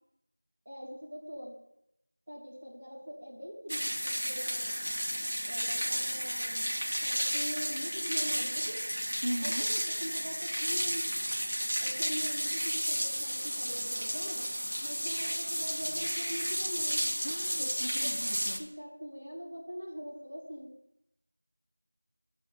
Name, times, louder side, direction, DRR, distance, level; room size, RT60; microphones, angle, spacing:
voice 1, 0.6-1.6 2.3-4.7 5.5-6.7 7.0-8.8 9.4-11.2 11.8-14.5 14.8-17.1 17.6-18.2 18.6-20.7, equal, 10° right, -8 dB, 1.1 m, -43 dB
sound 1, 3.7-18.6, equal, 75° right, 2.0 m, -32 dB
voice 2, 9.2-9.7 17.2-18.6, equal, 55° right, 5 dB, 0.8 m, -37 dB
7.1 x 6.7 x 6.9 m, 0.80 s
figure-of-eight pair, 180°, 0 cm